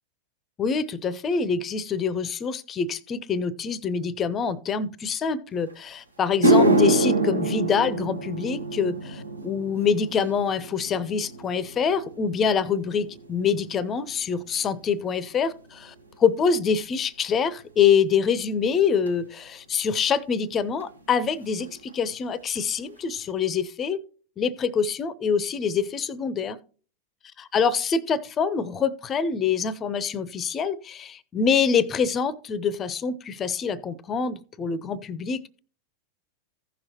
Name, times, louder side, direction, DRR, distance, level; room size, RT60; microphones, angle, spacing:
voice 1, 0.6-24.0 24.4-26.6 27.4-35.6, left 6 dB, 25° left, 0.6 m, -25 dB
sound 1, 5.7-5.8 6.2-14.7 15.0-15.5 16.2-16.3 19.1-19.2 20.8-20.9 21.1-21.3 21.6-22.1 22.5-22.6 23.2-23.3, right 2 dB, 80° right, 1.0 m, -26 dB
15.5 x 6.2 x 2.9 m
figure-of-eight pair, 90°, 0 cm